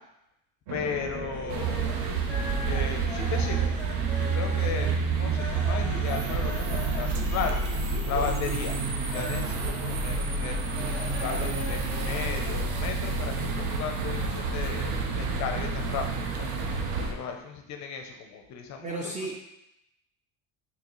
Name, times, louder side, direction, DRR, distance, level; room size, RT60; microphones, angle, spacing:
voice 1, 0.7-2.0 2.6-3.7 4.2-7.6 8.0-8.8 9.1-10.6 11.0-16.5 17.0-19.4, left 6 dB, 45° left, 4 dB, 0.5 m, -35 dB
sound 1, 0.7-7.2 12.5-17.4, right 3 dB, 50° right, 0.9 m, -46 dB
sound 2, 1.3-13.1, left 3 dB, 5° left, 0.7 m, -41 dB
sound 3, 1.5-17.1, right 4 dB, 85° right, 0.6 m, -29 dB
voice 2, 18.8-19.3, right 2 dB, 20° right, -2 dB, 0.3 m, -33 dB
3.9 x 2.9 x 2.9 m, 0.86 s
cardioid pair, 120°, 42 cm